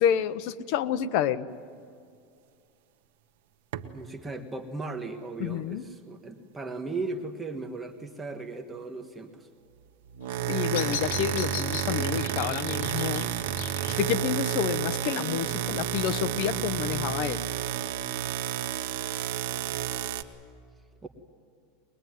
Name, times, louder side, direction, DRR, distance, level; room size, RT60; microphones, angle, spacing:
voice 1, 0.0-1.5 5.4-5.8 10.5-13.3 13.9-17.4, left 10 dB, 55° left, 12 dB, 1.0 m, -29 dB
sound 1, 3.7-4.0 10.0-20.2, right 10 dB, 75° right, 1.2 m, -30 dB
voice 2, 3.9-9.5 21.0-21.1, right 3 dB, 10° right, 5 dB, 1.4 m, -37 dB
Bird vocalization bird call bird song, 10.2-16.2, left 8 dB, 70° left, 1.8 m, -41 dB
22.5 x 21.0 x 9.3 m, 2.4 s
supercardioid pair, 150°, 0 cm